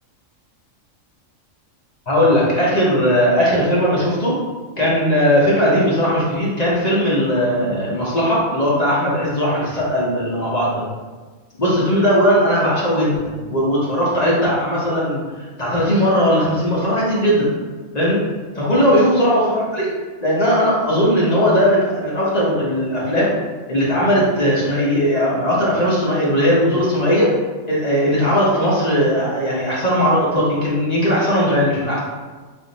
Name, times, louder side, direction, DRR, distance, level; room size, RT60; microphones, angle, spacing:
voice 1, 2.1-4.3 4.8-10.8 11.6-15.2 15.6-17.5 17.9-18.2 18.5-19.9 20.2-23.3 23.7-27.3 27.7-32.0, equal, 35° left, -6 dB, 0.8 m, -18 dB
3.5 x 2.5 x 3.9 m, 1.4 s
omnidirectional pair, 1.4 m